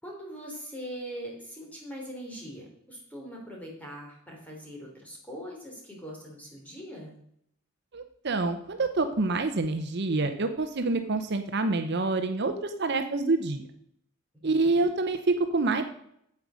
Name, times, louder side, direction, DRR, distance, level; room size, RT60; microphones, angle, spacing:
voice 1, 0.0-7.1 14.4-14.9, equal, 5° left, -2 dB, 3.2 m, -42 dB
voice 2, 7.9-13.6 14.4-15.8, right 3 dB, 50° right, 7 dB, 0.7 m, -27 dB
8.7 x 7.8 x 6.2 m, 0.71 s
head